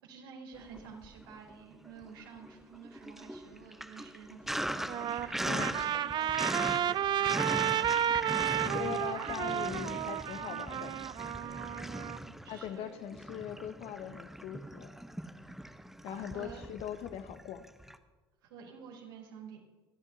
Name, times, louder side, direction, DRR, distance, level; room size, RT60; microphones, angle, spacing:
voice 1, 0.0-10.1 10.5-10.7 12.1-12.9 16.1-16.6 18.4-19.6, right 6 dB, 70° right, -2 dB, 3.9 m, -51 dB
Sink (filling or washing), 0.6-1.5 1.9-18.0, right 1 dB, ahead, 0.9 m, -40 dB
Trumpet, 4.7-12.2, right 10 dB, 35° right, 0.4 m, -32 dB
voice 2, 5.4-5.8 8.6-10.9 12.5-14.9 16.0-17.6, left 10 dB, 50° left, 10 dB, 1.0 m, -41 dB
28.0 x 11.0 x 2.8 m, 1.3 s
figure-of-eight pair, 60°, 13 cm